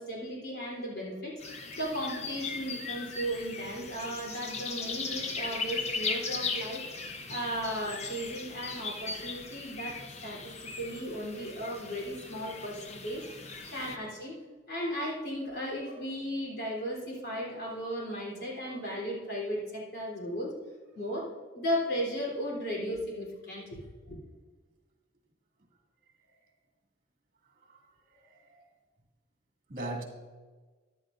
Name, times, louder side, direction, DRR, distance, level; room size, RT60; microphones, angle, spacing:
voice 1, 0.0-6.8 7.3-13.3 13.7-14.4 14.7-20.5 20.9-23.8 24.1-24.2, equal, 55° left, -3 dB, 3.4 m, -36 dB
sound 1, 1.4-14.0, left 4 dB, 35° left, 0.9 m, -38 dB
voice 2, 28.1-28.6 29.7-30.0, right 2 dB, 45° right, 1 dB, 2.2 m, -40 dB
14.0 x 11.5 x 2.6 m, 1.4 s
head